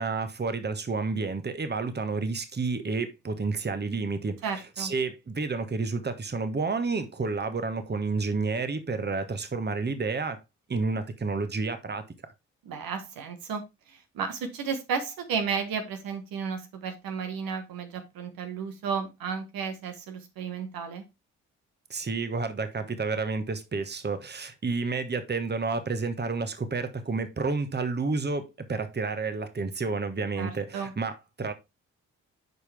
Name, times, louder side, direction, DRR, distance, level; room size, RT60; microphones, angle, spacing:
voice 1, 0.0-10.4 10.7-12.0 21.9-31.5, right 4 dB, 30° right, 1.3 m, -30 dB
voice 2, 4.4-4.9 12.6-13.6 13.9-21.0 30.4-30.9, right 6 dB, 75° right, 1.4 m, -33 dB
8.2 x 5.0 x 3.4 m
hypercardioid pair, 45°, 35 cm